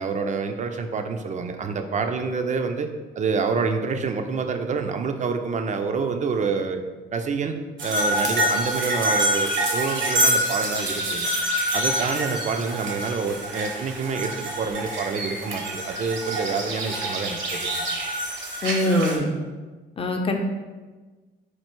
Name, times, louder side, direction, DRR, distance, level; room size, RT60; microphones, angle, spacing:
voice 1, 0.0-2.9 3.2-6.8 7.1-11.3 11.7-17.9, right 5 dB, 35° right, 7 dB, 0.5 m, -27 dB
sound 1, 7.8-19.2, right 1 dB, 70° right, 1.0 m, -26 dB
voice 2, 18.6-19.3 20.0-20.4, left 1 dB, 30° left, 3 dB, 0.6 m, -23 dB
4.5 x 2.4 x 4.4 m, 1.3 s
cardioid pair, 90°, 20 cm